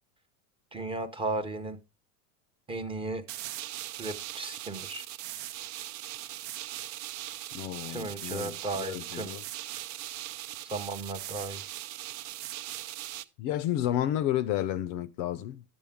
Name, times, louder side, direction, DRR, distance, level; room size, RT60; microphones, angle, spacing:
voice 1, 0.7-1.8 2.7-3.2 4.0-5.0 7.9-9.3 10.6-11.6, right 2 dB, 15° right, 0.7 m, -35 dB
sound 1, 3.3-13.2, right 14 dB, 60° right, 0.7 m, -40 dB
voice 2, 7.5-9.4 13.4-15.6, left 12 dB, 50° left, 0.5 m, -31 dB
11.5 x 7.1 x 3.6 m
supercardioid pair, 145°, 42 cm